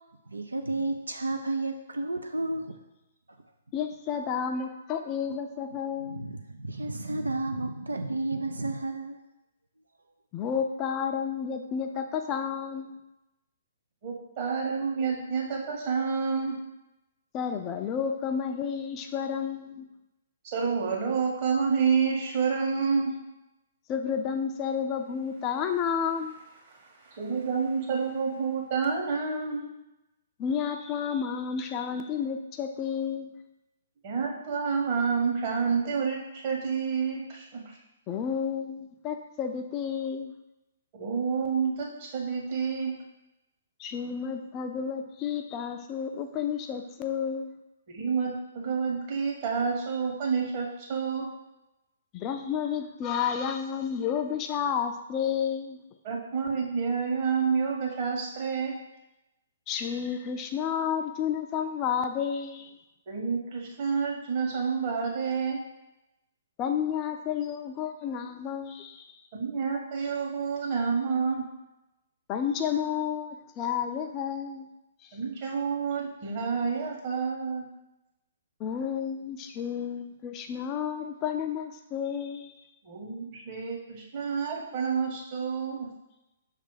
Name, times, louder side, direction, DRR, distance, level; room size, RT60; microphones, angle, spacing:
voice 1, 0.3-2.8 6.0-9.2, right 2 dB, 85° right, 5 dB, 0.5 m, -32 dB
voice 2, 3.7-6.2 10.3-13.0 17.3-19.9 23.9-26.4 30.4-33.3 38.1-40.3 43.8-47.5 52.1-55.8 59.7-62.8 66.6-69.2 72.3-74.7 75.0-75.1 78.6-82.5, left 7 dB, 25° left, 6 dB, 0.4 m, -31 dB
voice 3, 14.0-16.6 20.4-23.1 26.7-29.6 34.0-37.8 40.9-42.9 47.9-51.3 56.0-58.7 63.1-65.6 69.3-71.4 75.1-77.7 82.8-85.9, right 5 dB, 45° right, -2 dB, 1.7 m, -29 dB
5.8 x 3.3 x 5.0 m, 0.95 s
figure-of-eight pair, 125°, 0 cm